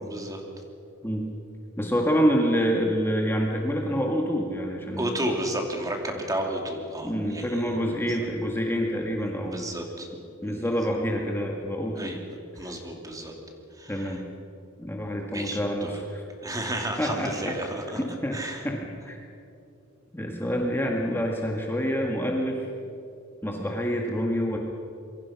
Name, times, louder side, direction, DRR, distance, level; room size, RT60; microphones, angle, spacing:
voice 1, 0.0-0.4 5.0-7.8 9.5-10.1 10.4-10.7 12.0-12.2 12.5-13.3 13.8-14.2 15.3-15.9 16.4-18.0 18.3-18.6, right 1 dB, 15° right, 2 dB, 2.9 m, -32 dB
voice 2, 1.8-5.1 7.0-9.7 10.4-12.2 12.6-12.7 13.9-14.2 14.8-16.2 17.0-17.5 18.0-18.4 18.6-18.8 19.0-19.2 20.1-22.7 23.4-24.6, equal, 10° left, 0 dB, 1.9 m, -27 dB
26.0 x 23.0 x 6.0 m, 2.7 s
head